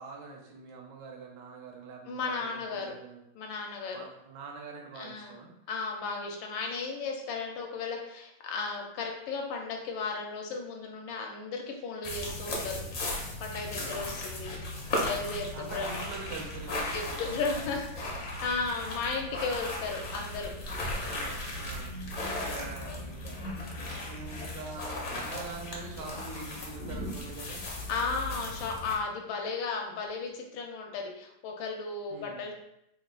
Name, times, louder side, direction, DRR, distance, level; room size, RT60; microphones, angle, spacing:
voice 1, 0.0-3.2 3.9-5.5 13.7-14.1 15.5-17.3 21.0-27.6 32.1-32.4, right 4 dB, 75° right, 0 dB, 1.2 m, -44 dB
voice 2, 2.1-2.9 3.3-4.0 5.0-5.4 5.7-12.8 13.4-14.5 15.0-15.9 16.9-20.5 22.6-23.0 27.9-32.5, left 4 dB, 80° left, 1 dB, 1.3 m, -35 dB
sound 1, 12.0-29.0, left 1 dB, 55° left, 0.8 m, -36 dB
3.5 x 2.3 x 3.6 m, 0.79 s
omnidirectional pair, 2.1 m